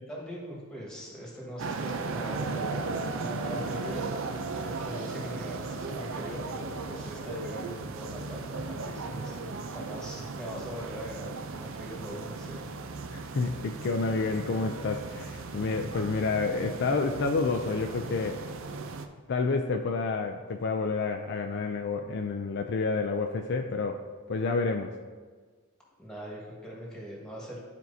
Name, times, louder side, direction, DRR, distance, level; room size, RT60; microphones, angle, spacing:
voice 1, 0.1-4.1 4.6-12.6 26.0-27.6, equal, 5° left, -4 dB, 1.5 m, -41 dB
sound 1, 1.6-19.1, right 3 dB, 60° right, 0.5 m, -36 dB
voice 2, 13.1-18.4 19.3-24.0 24.3-24.9, left 4 dB, 50° left, 4 dB, 0.4 m, -29 dB
11.5 x 4.5 x 2.7 m, 1.5 s
head